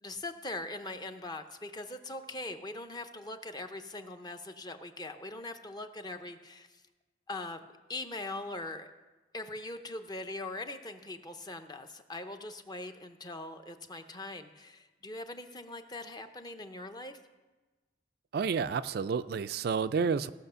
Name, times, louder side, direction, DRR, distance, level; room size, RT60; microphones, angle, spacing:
voice 1, 0.0-6.8 7.3-8.9 9.3-17.2, left 2 dB, 25° left, 7 dB, 0.7 m, -41 dB
voice 2, 18.3-20.3, right 5 dB, 60° right, 12 dB, 0.3 m, -30 dB
16.0 x 5.7 x 6.7 m, 1.2 s
head